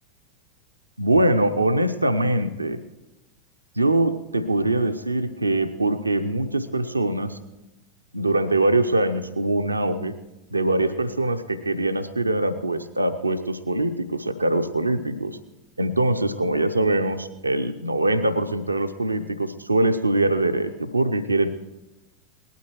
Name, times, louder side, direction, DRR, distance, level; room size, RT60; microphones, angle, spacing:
voice 1, 1.0-2.8 3.8-7.4 8.1-10.1 10.5-15.4 15.8-21.5, right 2 dB, 80° right, 8 dB, 0.7 m, -23 dB
19.0 x 12.0 x 4.6 m, 1.0 s
figure-of-eight pair, 90°, 0 cm